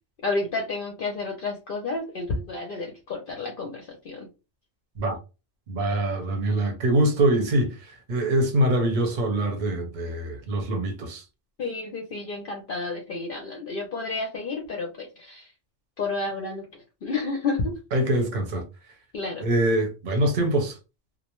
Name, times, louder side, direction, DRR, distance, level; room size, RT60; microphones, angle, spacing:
voice 1, 0.2-4.3 11.6-15.4 16.0-16.6 17.0-17.7 19.1-19.5, left 3 dB, 55° left, 0.6 m, -30 dB
voice 2, 5.7-11.2 17.9-18.6 19.4-20.8, right 1 dB, 45° right, 0.8 m, -24 dB
2.5 x 2.0 x 2.9 m
omnidirectional pair, 1.3 m